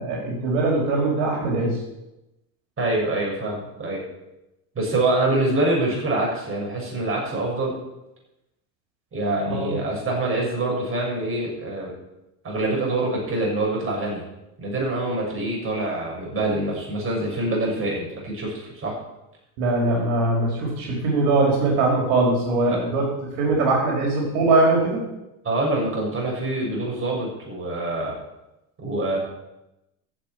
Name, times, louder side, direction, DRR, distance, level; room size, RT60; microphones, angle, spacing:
voice 1, 0.0-1.8 9.5-9.8 19.6-25.0, right 2 dB, 75° right, -1 dB, 4.8 m, -21 dB
voice 2, 2.8-4.0 4.8-7.7 9.1-11.9 12.4-14.2 14.6-19.0 22.7-22.8 25.5-28.2 28.8-29.2, right 2 dB, 30° right, -2 dB, 6.9 m, -25 dB
12.0 x 7.5 x 9.7 m, 0.94 s
supercardioid pair, 115°, 45 cm